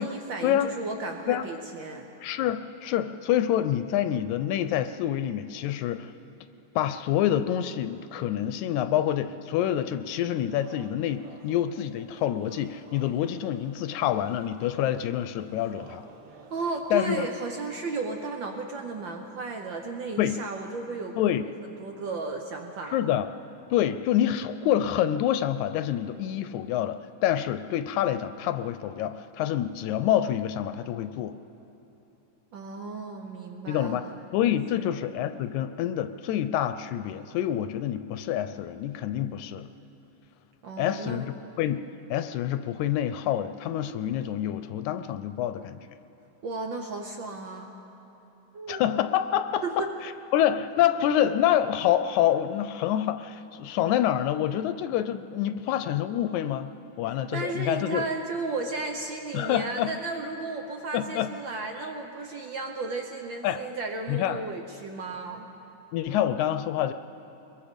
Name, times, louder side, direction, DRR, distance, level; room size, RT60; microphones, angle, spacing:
voice 1, 0.0-2.1 16.5-21.3 21.8-23.0 32.5-34.1 34.7-35.0 40.6-41.3 46.4-47.8 48.5-48.8 49.6-49.9 57.3-65.5, right 3 dB, 80° right, 4 dB, 1.0 m, -34 dB
voice 2, 2.2-6.1 6.8-16.1 16.9-17.3 20.2-20.3 21.2-21.4 22.9-23.3 23.7-31.4 33.7-34.1 34.3-39.7 40.8-41.3 41.6-41.8 42.1-45.8 48.7-56.7 57.0-58.1 59.3-59.9 60.9-61.3 63.4-63.6 64.1-64.4 65.9-66.9, left 11 dB, 80° left, 11 dB, 1.9 m, -27 dB
sound 1, 10.3-17.0, right 4 dB, 50° right, 1.3 m, -52 dB
23.0 x 22.0 x 5.2 m, 3.0 s
omnidirectional pair, 3.5 m